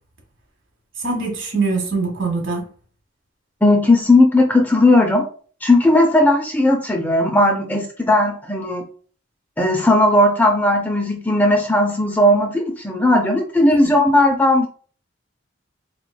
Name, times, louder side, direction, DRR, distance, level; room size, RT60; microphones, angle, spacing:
voice 1, 1.0-2.6 13.8-13.9, right 3 dB, 70° right, 1.4 m, -23 dB
voice 2, 3.6-5.2 5.6-8.8 9.6-14.7, left 1 dB, 10° left, 0.5 m, -16 dB
4.0 x 3.1 x 2.3 m
head